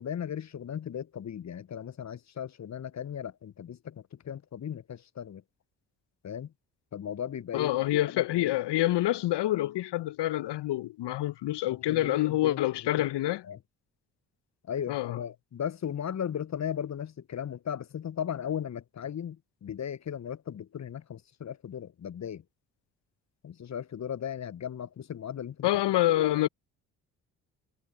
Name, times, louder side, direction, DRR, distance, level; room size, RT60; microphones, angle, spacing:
voice 1, 0.0-5.4 6.2-6.5 6.9-8.2 11.7-12.6 13.5-13.6 14.7-22.4 23.4-25.7, left 8 dB, 35° left, 1.0 m, -36 dB
voice 2, 7.5-13.4 14.9-15.2 25.6-26.5, left 15 dB, 60° left, 1.3 m, -27 dB
figure-of-eight pair, 40°, 48 cm